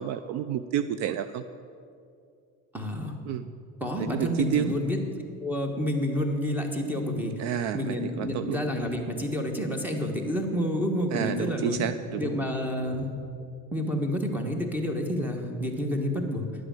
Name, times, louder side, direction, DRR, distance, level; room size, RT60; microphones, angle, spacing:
voice 1, 0.0-1.4 3.3-3.4 4.0-4.7 7.4-8.6 11.1-12.4, right 10 dB, 55° right, 12 dB, 0.4 m, -30 dB
voice 2, 2.7-3.2 3.8-5.0 5.4-7.3 7.7-11.8 12.2-13.1 13.7-16.5, equal, 5° right, 4 dB, 1.3 m, -29 dB
10.5 x 7.9 x 7.6 m, 2.4 s
cardioid pair, 140°, 33 cm